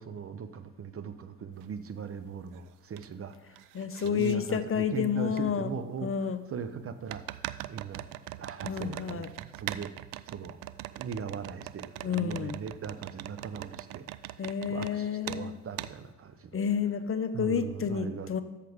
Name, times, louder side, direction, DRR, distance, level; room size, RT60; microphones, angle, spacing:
voice 1, 0.0-7.2 7.7-8.0 8.4-9.3 9.5-9.9 10.3-10.6 10.9-16.6 17.3-18.3, right 6 dB, 35° right, 10 dB, 0.9 m, -40 dB
sound 1, 1.6-1.7 2.3-3.1 3.3-4.4 5.4-5.5 7.1-14.9 15.3-15.4 15.8-15.9, right 15 dB, 60° right, 0.6 m, -41 dB
voice 2, 3.7-5.7 6.0-6.4 8.6-9.3 12.0-12.6 14.4-15.6 16.5-18.4, left 7 dB, 35° left, 11 dB, 0.9 m, -30 dB
13.0 x 6.7 x 3.7 m, 1.1 s
hypercardioid pair, 60°, 37 cm